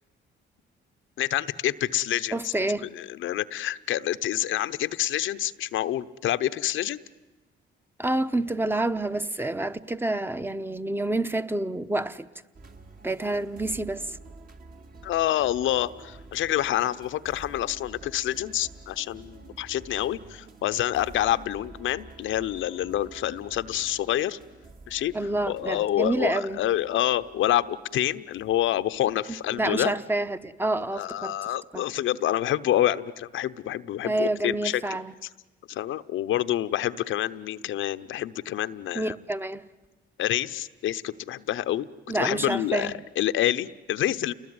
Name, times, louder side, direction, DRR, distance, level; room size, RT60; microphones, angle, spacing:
voice 1, 1.2-2.5 2.9-7.0 15.0-24.4 24.9-30.0 31.0-34.8 35.7-39.1 40.2-44.3, left 13 dB, 80° left, 0.9 m, -27 dB
voice 2, 2.3-2.9 8.0-12.3 13.0-14.2 25.1-26.6 29.6-31.3 31.7-31.8 34.0-35.1 38.9-39.7 42.1-43.0, right 2 dB, 10° right, 1.0 m, -28 dB
sound 1, 12.5-30.2 30.9-31.1, right 3 dB, 45° right, 2.6 m, -49 dB
30.0 x 21.0 x 9.6 m
cardioid pair, 90°, 20 cm